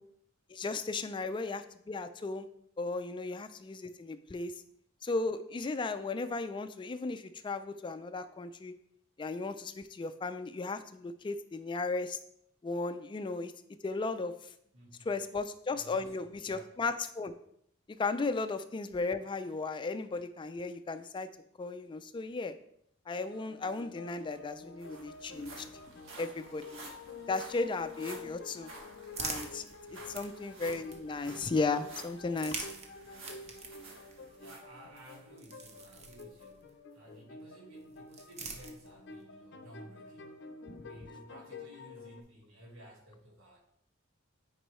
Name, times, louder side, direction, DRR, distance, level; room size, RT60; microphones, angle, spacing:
voice 1, 0.5-2.5 2.8-4.5 5.0-8.7 9.2-12.2 12.6-13.5 13.8-14.5 15.1-17.3 17.9-21.3 21.6-22.5 23.1-25.7 26.2-26.9 27.3-28.7 29.2-29.7 30.1-32.7 40.7-40.8, left 3 dB, 25° left, 10 dB, 0.3 m, -35 dB
voice 2, 14.7-15.4 15.7-16.7 29.9-30.3 34.1-40.3 40.8-43.6, equal, 85° right, -2 dB, 1.6 m, -55 dB
sound 1, 23.3-42.2, left 3 dB, 60° left, 0.6 m, -50 dB
sound 2, 24.0-24.1 24.3-35.2 35.7-35.8 36.4-36.5, right 2 dB, 70° right, 1.4 m, -51 dB
sound 3, 28.4-31.4 32.2-36.8 37.7-39.2, right 4 dB, 35° right, 0.8 m, -46 dB
9.1 x 4.5 x 3.1 m, 0.70 s
head